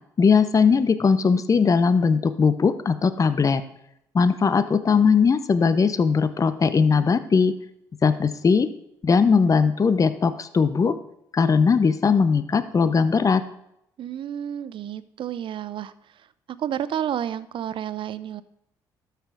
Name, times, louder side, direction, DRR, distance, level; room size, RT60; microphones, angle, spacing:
voice 1, 0.2-3.6 4.1-7.5 8.0-8.7 9.0-10.9 11.3-13.4, left 5 dB, 35° left, 13 dB, 0.6 m, -19 dB
voice 2, 14.0-15.9 16.6-18.4, right 10 dB, 55° right, 16 dB, 0.5 m, -30 dB
12.5 x 5.8 x 3.7 m, 0.78 s
hypercardioid pair, 50°, 10 cm